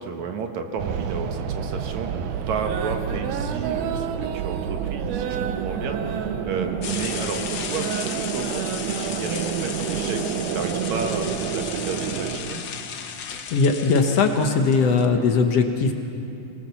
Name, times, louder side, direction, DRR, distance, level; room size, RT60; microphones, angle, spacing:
voice 1, 0.0-12.6, right 5 dB, 70° right, 5 dB, 2.5 m, -32 dB
sound 1, 0.8-12.4, right 8 dB, 90° right, 2.4 m, -28 dB
sound 2, 6.8-15.1, left 7 dB, 85° left, 0.9 m, -34 dB
voice 2, 13.3-15.9, left 4 dB, 60° left, 5 dB, 2.0 m, -20 dB
25.5 x 18.0 x 7.0 m, 2.7 s
omnidirectional pair, 3.5 m